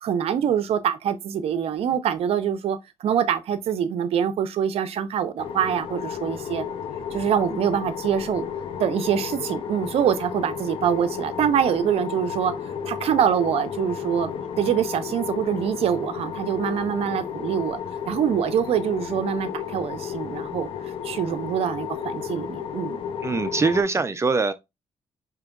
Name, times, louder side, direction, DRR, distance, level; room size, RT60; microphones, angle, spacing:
voice 1, 0.0-6.6 7.1-8.5 8.8-12.5 12.8-14.3 14.6-17.8 18.1-20.7 21.0-23.0, right 8 dB, 70° right, 0.6 m, -24 dB
sound 1, 5.4-23.8, left 7 dB, 60° left, 0.6 m, -33 dB
voice 2, 23.2-24.5, right 4 dB, 25° right, 0.4 m, -22 dB
4.9 x 2.8 x 2.3 m
cardioid pair, 85°, 10 cm